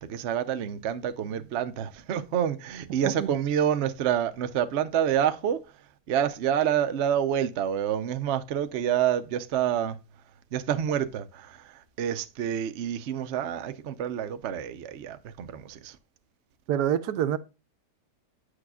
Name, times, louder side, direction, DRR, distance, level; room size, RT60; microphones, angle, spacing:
voice 1, 0.0-5.6 6.1-10.0 10.5-11.5 12.0-15.9, right 9 dB, 55° right, 0.8 m, -28 dB
voice 2, 3.0-3.4 16.7-17.4, right 10 dB, 75° right, 1.2 m, -26 dB
9.7 x 6.4 x 2.3 m
omnidirectional pair, 1.8 m